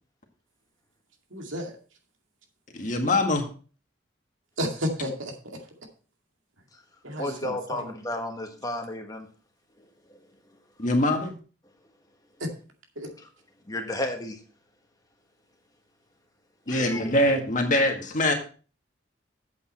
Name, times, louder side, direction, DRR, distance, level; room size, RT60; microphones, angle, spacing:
voice 1, 1.3-1.7 4.6-5.3 7.0-7.9 13.0-13.1, equal, 80° right, 3 dB, 2.2 m, -31 dB
voice 2, 2.7-3.4 10.8-11.3 16.7-18.3, left 1 dB, 40° left, 3 dB, 1.8 m, -23 dB
voice 3, 7.2-9.3 13.0-13.1 13.7-14.4 16.7-17.1, left 1 dB, 20° left, 4 dB, 1.5 m, -33 dB
8.5 x 8.1 x 4.3 m, 0.38 s
head